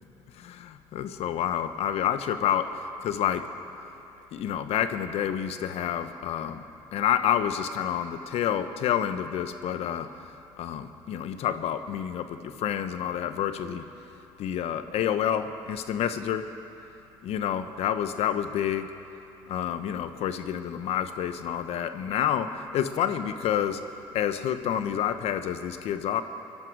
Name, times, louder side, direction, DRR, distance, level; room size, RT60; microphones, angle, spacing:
voice 1, 0.3-2.7 3.0-3.4 4.3-6.6 6.9-10.1 10.6-13.8 14.4-16.4 17.2-18.9 19.5-23.8 24.1-26.2, left 9 dB, 70° left, 10 dB, 0.9 m, -28 dB
23.0 x 11.5 x 4.7 m, 2.8 s
supercardioid pair, 75°, 11 cm